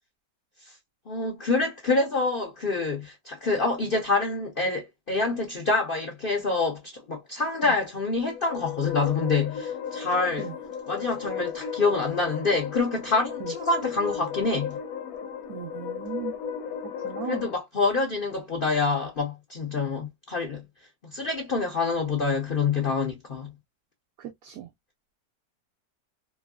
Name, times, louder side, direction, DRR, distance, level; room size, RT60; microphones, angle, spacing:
voice 1, 1.1-10.5 10.9-14.8 17.2-20.6 21.0-23.5, left 3 dB, 50° left, 0.7 m, -26 dB
sound 1, 8.1-17.5, left 7 dB, 70° left, 1.0 m, -35 dB
voice 2, 15.5-16.4 17.0-17.4 24.2-24.7, right 10 dB, 65° right, 1.0 m, -37 dB
3.0 x 2.6 x 2.3 m
omnidirectional pair, 1.8 m